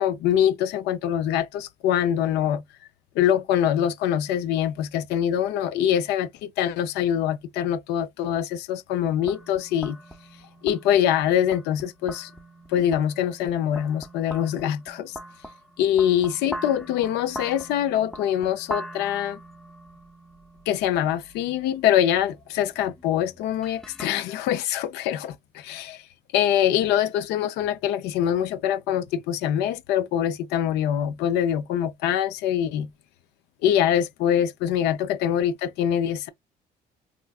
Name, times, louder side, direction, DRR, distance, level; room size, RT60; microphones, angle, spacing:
voice 1, 0.0-2.6 3.2-10.0 10.6-12.3 12.7-15.2 15.8-19.4 20.7-26.1 26.3-32.9 33.6-36.3, left 10 dB, 85° left, 0.4 m, -24 dB
sound 1, 9.2-24.1, equal, 5° left, 0.5 m, -42 dB
3.7 x 2.2 x 2.3 m
cardioid pair, 110°, 17 cm